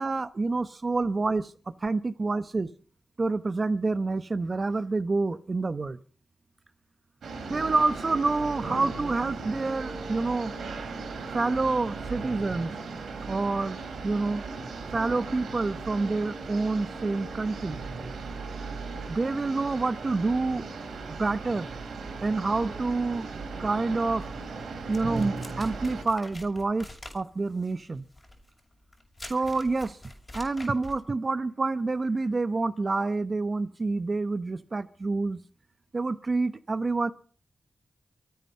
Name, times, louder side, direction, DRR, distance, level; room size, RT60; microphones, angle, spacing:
voice 1, 0.0-2.7 3.2-6.0 7.5-10.5 11.3-12.7 13.3-14.4 14.9-17.8 19.1-20.6 21.1-21.7 22.2-23.3 23.6-24.2 24.9-26.9 27.1-28.0 29.3-30.0 30.3-35.4 35.9-37.1, right 3 dB, 45° right, 13 dB, 0.8 m, -28 dB
sound 1, 7.2-26.0, right 4 dB, 90° right, 3.7 m, -37 dB
sound 2, 24.9-31.0, left 1 dB, 30° left, 6.5 m, -46 dB
24.5 x 9.5 x 5.6 m, 0.42 s
cardioid pair, 50°, 0 cm